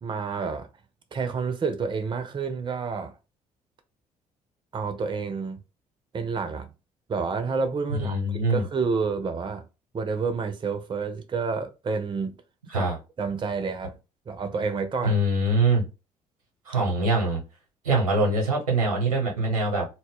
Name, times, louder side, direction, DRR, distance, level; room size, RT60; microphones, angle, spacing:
voice 1, 0.0-0.7 1.1-3.2 4.7-5.6 6.1-6.7 7.1-9.7 9.9-12.3 12.7-12.9 13.2-13.9 14.3-15.2, right 5 dB, 25° right, 0.5 m, -29 dB
voice 2, 8.0-8.6 12.7-13.0 15.0-15.8 16.7-17.4 17.8-19.9, right 2 dB, 85° right, 0.8 m, -23 dB
2.2 x 2.0 x 3.5 m
figure-of-eight pair, 45°, 18 cm